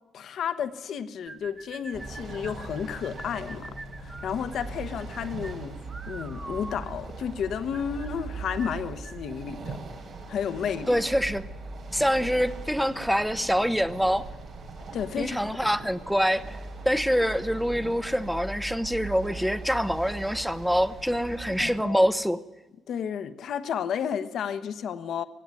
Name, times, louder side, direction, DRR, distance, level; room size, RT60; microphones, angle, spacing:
voice 1, 0.1-3.7 4.0-5.8 6.1-9.8 10.3-11.0 14.9-15.9 21.5-22.0 22.9-25.2, left 8 dB, 70° left, 11 dB, 1.2 m, -32 dB
sound 1, 1.3-9.3, right 2 dB, 25° right, 2.0 m, -45 dB
sound 2, 1.9-21.7, right 3 dB, 55° right, 7.0 m, -40 dB
voice 2, 10.9-11.4 11.9-14.2 15.2-16.6 16.8-22.4, equal, ahead, 14 dB, 0.9 m, -25 dB
18.0 x 15.5 x 9.6 m, 1.1 s
cardioid pair, 90°, 0 cm